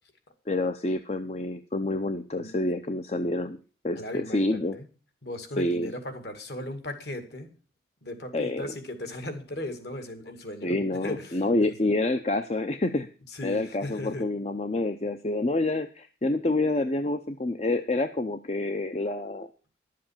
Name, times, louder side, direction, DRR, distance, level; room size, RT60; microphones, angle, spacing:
voice 1, 0.5-3.6 3.8-4.8 5.6-5.9 8.3-8.7 10.6-13.1 13.4-19.5, left 2 dB, 35° left, 9 dB, 0.6 m, -28 dB
voice 2, 3.9-4.9 5.2-7.5 8.0-11.7 13.3-14.2, left 1 dB, 60° left, 8 dB, 2.2 m, -37 dB
11.5 x 7.6 x 7.3 m, 0.37 s
head